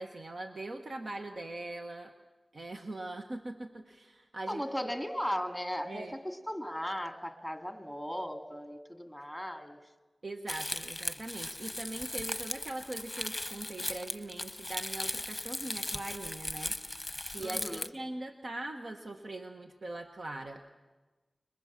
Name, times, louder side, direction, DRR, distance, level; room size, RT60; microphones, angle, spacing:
voice 1, 0.0-2.1 2.5-4.9 5.9-6.1 10.2-17.0 17.3-20.7, right 2 dB, 60° right, 4 dB, 1.3 m, -41 dB
voice 2, 4.5-9.8 17.4-17.9, equal, ahead, 5 dB, 2.2 m, -37 dB
Crumpling crinkling, 10.5-17.9, left 2 dB, 20° left, 1.0 m, -38 dB
29.5 x 22.0 x 7.4 m, 1.2 s
wide cardioid pair, 100°, 0 cm